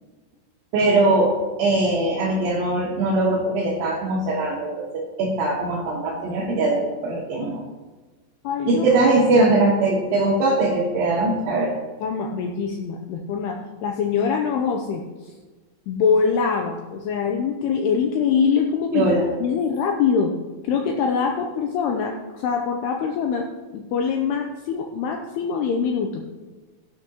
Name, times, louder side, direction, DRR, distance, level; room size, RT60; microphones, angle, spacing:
voice 1, 0.7-7.6 8.7-11.8 18.9-19.3, right 2 dB, 65° right, -5 dB, 2.7 m, -21 dB
voice 2, 8.4-8.9 12.0-15.0 15.9-19.1 19.4-20.3 20.6-26.3, left 6 dB, 85° left, 2 dB, 2.4 m, -23 dB
16.5 x 9.7 x 3.0 m, 1.3 s
omnidirectional pair, 5.4 m